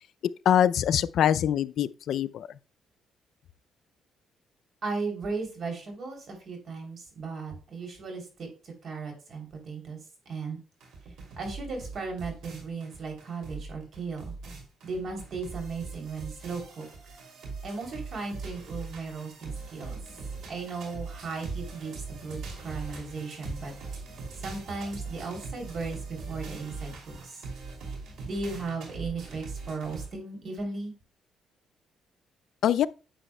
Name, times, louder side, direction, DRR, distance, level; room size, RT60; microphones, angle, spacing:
voice 1, 0.5-2.5 32.6-32.9, left 10 dB, 70° left, 0.3 m, -23 dB
voice 2, 4.8-10.0 10.2-10.6 11.4-14.3 14.8-16.9 17.6-20.0 20.5-23.7 24.4-27.4 28.2-30.9, right 4 dB, 50° right, 3.1 m, -36 dB
sound 1, 10.8-30.1, right 4 dB, 75° right, 2.7 m, -41 dB
10.0 x 7.0 x 2.2 m
cardioid pair, 105°, 0 cm